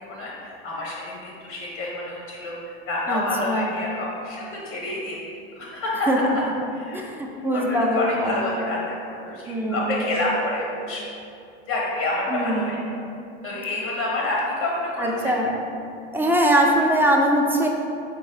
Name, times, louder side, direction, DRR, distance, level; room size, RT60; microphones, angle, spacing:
voice 1, 0.0-5.2 5.5-6.4 6.7-11.0 11.7-12.8 13.4-15.4, left 2 dB, 60° left, -3 dB, 1.0 m, -28 dB
voice 2, 3.1-3.7 6.1-6.2 6.9-8.4 9.5-10.0 12.3-12.8 15.0-15.5 16.1-17.7, right 1 dB, 5° right, 0 dB, 0.4 m, -22 dB
3.7 x 3.6 x 3.3 m, 2.6 s
hypercardioid pair, 90°, 31 cm